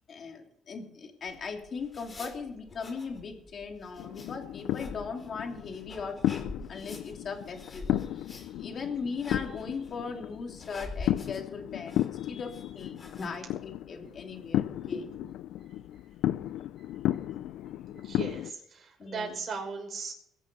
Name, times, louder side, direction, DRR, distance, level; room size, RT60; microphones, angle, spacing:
voice 1, 0.1-6.4 6.7-15.1 19.0-19.4, left 5 dB, 50° left, 3 dB, 3.0 m, -39 dB
sound 1, 1.3-13.4, left 3 dB, 35° left, 4.3 m, -45 dB
sound 2, 4.0-18.5, left 13 dB, 90° left, 0.4 m, -34 dB
voice 2, 17.9-20.1, right 5 dB, 50° right, 1 dB, 5.9 m, -37 dB
22.0 x 8.1 x 5.5 m, 0.74 s
cardioid pair, 90°, 0 cm